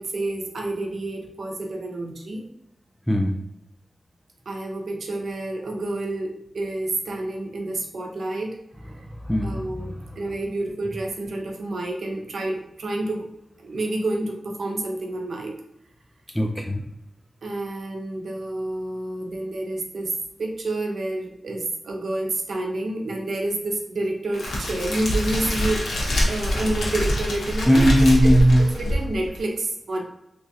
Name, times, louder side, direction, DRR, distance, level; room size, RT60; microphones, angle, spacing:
voice 1, 0.0-2.5 4.5-8.6 9.4-13.3 13.6-15.5 17.4-25.9 26.3-27.8 28.2-28.3 28.6-30.0, right 2 dB, 70° right, 1 dB, 0.7 m, -29 dB
voice 2, 3.1-3.4 8.9-10.2 16.3-16.8 27.7-28.6, equal, 5° left, 2 dB, 0.3 m, -19 dB
Crackle, 24.3-29.4, equal, 85° left, 1.0 m, -24 dB
3.5 x 3.0 x 2.7 m, 0.83 s
wide cardioid pair, 125°, 0 cm